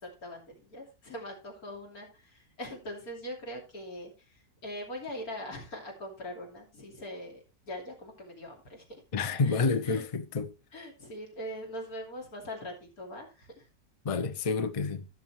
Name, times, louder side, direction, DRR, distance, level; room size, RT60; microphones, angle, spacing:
voice 1, 0.0-4.1 4.6-8.8 9.4-10.1 10.7-13.6, equal, 65° left, 3.3 m, -42 dB
voice 2, 9.1-10.5 14.0-15.1, left 4 dB, 40° left, 0.4 m, -29 dB
16.0 x 6.1 x 3.1 m
omnidirectional pair, 1.7 m